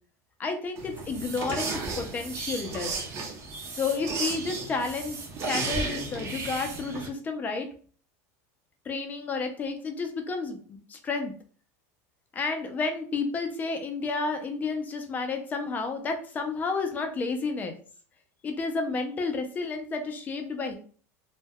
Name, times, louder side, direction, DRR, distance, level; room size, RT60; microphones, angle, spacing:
voice 1, 0.4-2.9 3.7-5.2 5.4-7.7 8.9-11.3 12.3-17.8 18.4-20.8, left 4 dB, 20° left, 5 dB, 0.4 m, -31 dB
sound 1, 0.8-7.1, right 3 dB, 35° right, 0.5 m, -34 dB
2.1 x 2.1 x 3.4 m, 0.43 s
supercardioid pair, 150°, 8 cm